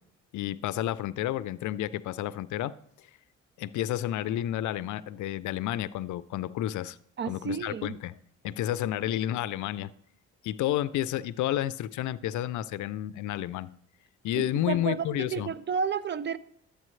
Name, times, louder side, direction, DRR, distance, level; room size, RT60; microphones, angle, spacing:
voice 1, 0.3-2.7 3.6-7.0 7.2-8.2 8.4-9.9 10.4-13.7 14.2-15.5, left 13 dB, 75° left, 0.5 m, -31 dB
voice 2, 7.2-7.9 14.4-16.4, right 6 dB, 40° right, 0.5 m, -32 dB
12.0 x 8.3 x 3.2 m
cardioid pair, 90°, 30 cm